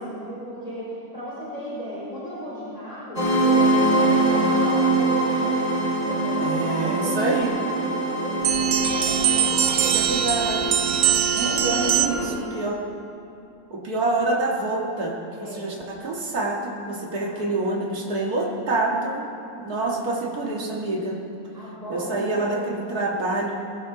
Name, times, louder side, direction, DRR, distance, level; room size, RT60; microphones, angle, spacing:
voice 1, 0.0-5.6 6.0-10.0 11.3-12.4 15.3-15.6 17.0-17.7 19.7-20.1 21.5-22.7, equal, 25° left, -9 dB, 4.9 m, -36 dB
sound 1, 3.2-12.3, right 2 dB, 30° right, 4.3 m, -23 dB
voice 2, 6.4-7.6 9.9-10.8 11.4-12.8 13.7-19.3 19.6-21.2 21.9-23.6, right 2 dB, 85° right, -2 dB, 2.3 m, -27 dB
sound 2, 8.4-12.4, right 10 dB, 65° right, 0.8 m, -23 dB
21.5 x 16.5 x 3.9 m, 2.6 s
omnidirectional pair, 1.6 m